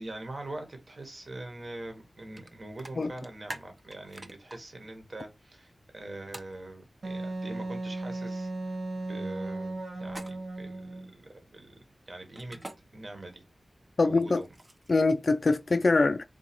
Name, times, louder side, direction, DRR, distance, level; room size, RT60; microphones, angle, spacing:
voice 1, 0.0-8.8 9.0-11.8 12.1-12.6 12.9-13.4 14.0-14.5, right 2 dB, 50° right, 1.2 m, -43 dB
sound 1, 2.4-2.5 2.8-4.6 6.3-6.5 10.0-10.6 12.3-12.8 14.1-15.0, right 1 dB, 25° right, 0.6 m, -44 dB
Wind instrument woodwind instrument, 7.0-11.1, right 2 dB, 80° right, 0.9 m, -36 dB
voice 2, 14.0-14.4 14.9-16.2, left 3 dB, 55° left, 0.3 m, -24 dB
3.8 x 2.5 x 4.3 m
wide cardioid pair, 80°, 0 cm